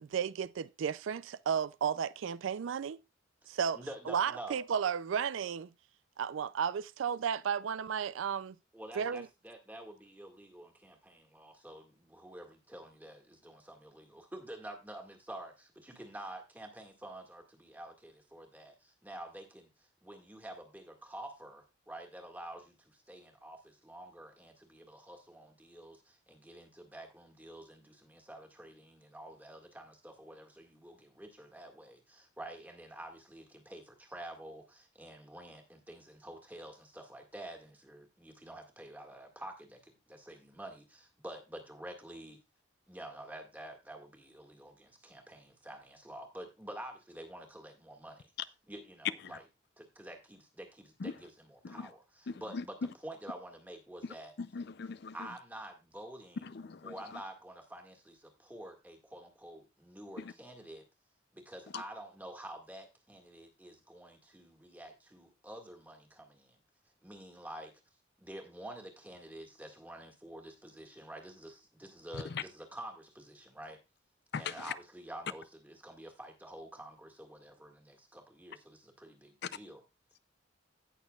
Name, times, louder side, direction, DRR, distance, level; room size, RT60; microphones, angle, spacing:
voice 1, 0.0-3.0 3.5-3.8 4.1-5.7 6.2-8.6 9.0-9.3, right 7 dB, 75° right, 0.4 m, -33 dB
voice 2, 3.7-4.6 8.7-42.4 42.9-48.3 48.7-49.4 49.8-54.3 55.1-56.5 56.8-60.9 61.3-66.6 67.0-67.8 68.2-73.8 74.4-79.8, right 1 dB, 10° right, 1.8 m, -49 dB
voice 3, 52.3-52.6 54.4-55.1 56.4-56.9 60.2-60.3 72.1-72.4 74.3-74.6, left 5 dB, 55° left, 0.5 m, -40 dB
17.0 x 6.4 x 2.3 m
head